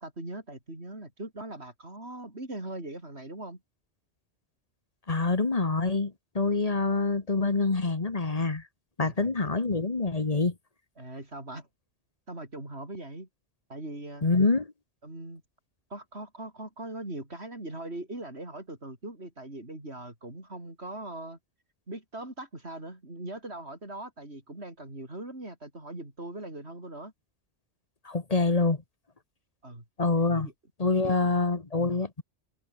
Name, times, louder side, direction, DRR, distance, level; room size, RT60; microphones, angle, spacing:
voice 1, 0.0-3.6 9.0-9.3 11.0-11.7 12.3-13.3 13.7-14.2 15.0-15.4 15.9-21.4 21.9-27.1 29.6-29.8 30.2-30.5 30.9-31.4, right 1 dB, 65° right, 6.6 m, -40 dB
voice 2, 5.1-8.6 9.0-10.5 14.2-14.7 28.0-28.8 30.0-30.5 30.8-32.2, left 3 dB, 35° left, 1.5 m, -26 dB
omnidirectional pair, 1.2 m